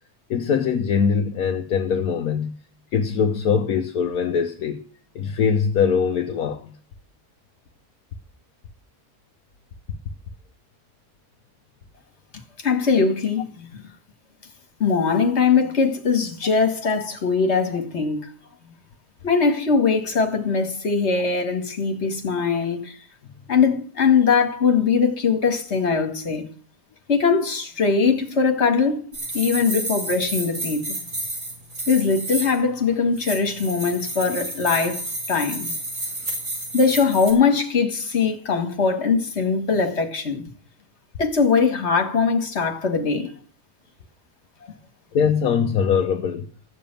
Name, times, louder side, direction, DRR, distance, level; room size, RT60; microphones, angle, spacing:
voice 1, 0.3-2.5 2.9-4.8 5.1-6.7 45.1-46.5, left 6 dB, 70° left, 1.4 m, -22 dB
voice 2, 12.6-13.8 14.8-18.3 19.2-23.0 23.5-26.5 27.1-29.0 29.3-31.0 31.9-35.0 35.3-35.7 36.7-40.4 41.2-43.3, left 5 dB, 45° left, 2.2 m, -21 dB
sound 1, 29.1-32.6 33.1-37.3, right 2 dB, 60° right, 5.6 m, -31 dB
14.5 x 7.0 x 9.0 m
omnidirectional pair, 1.7 m